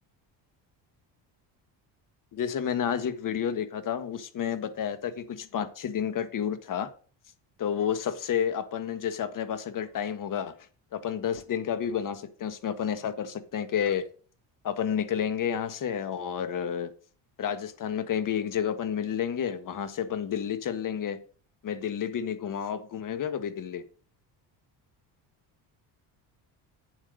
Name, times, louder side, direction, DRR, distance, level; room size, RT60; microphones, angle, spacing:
voice 1, 2.3-6.9 7.6-10.5 10.9-14.0 14.6-16.9 17.4-21.2 21.6-23.8, left 8 dB, 45° left, 1.5 m, -30 dB
8.8 x 7.8 x 5.0 m
cardioid pair, 125°, 43 cm